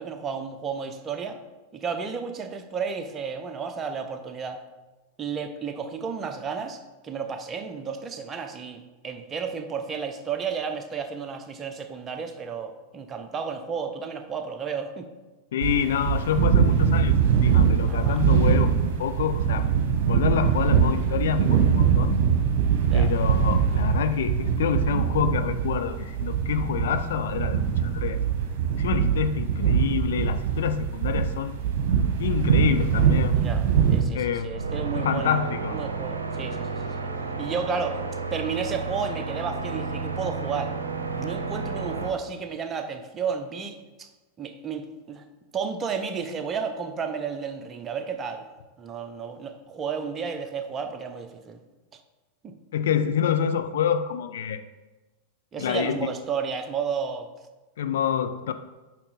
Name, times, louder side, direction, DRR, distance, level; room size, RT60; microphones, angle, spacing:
voice 1, 0.0-1.4 1.7-4.6 5.2-15.1 17.9-18.2 22.8-23.1 33.3-33.6 33.9-37.1 37.4-38.0 38.3-40.7 41.1-44.1 44.4-45.2 45.5-48.5 48.8-51.6 52.4-52.5 55.5-57.3, right 6 dB, 25° right, 7 dB, 0.8 m, -32 dB
voice 2, 15.5-19.7 20.1-22.2 22.9-28.2 28.8-31.5 32.2-33.4 34.1-34.6 34.9-35.8 52.7-54.6 55.6-56.1 57.8-58.5, left 8 dB, 60° left, 9 dB, 0.5 m, -27 dB
sound 1, 15.6-34.0, right 7 dB, 50° right, 1.3 m, -22 dB
sound 2, 34.5-42.1, right 4 dB, 70° right, 0.8 m, -31 dB
8.6 x 5.8 x 4.1 m, 1.2 s
figure-of-eight pair, 90°, 0 cm